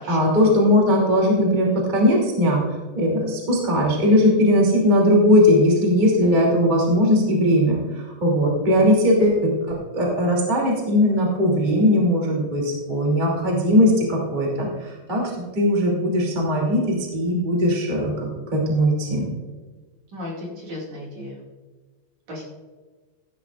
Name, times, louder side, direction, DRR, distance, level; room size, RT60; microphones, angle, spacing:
voice 1, 0.0-2.6 2.9-9.5 9.9-19.2, left 1 dB, 20° right, -3 dB, 1.1 m, -19 dB
voice 2, 20.1-21.3 22.3-22.4, left 1 dB, 45° right, -4 dB, 2.8 m, -35 dB
15.5 x 11.0 x 2.5 m, 1.4 s
omnidirectional pair, 6.0 m